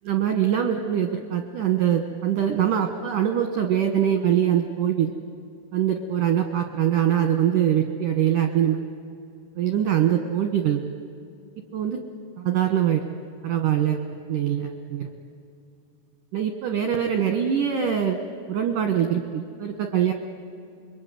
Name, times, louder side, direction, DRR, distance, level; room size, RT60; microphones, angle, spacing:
voice 1, 0.0-5.1 5.7-8.8 9.6-10.9 11.7-12.0 12.4-13.0 13.4-14.0 14.3-15.1 16.3-18.2 18.5-20.1, right 9 dB, 75° right, 5 dB, 1.9 m, -23 dB
27.5 x 22.5 x 9.4 m, 2.4 s
omnidirectional pair, 5.8 m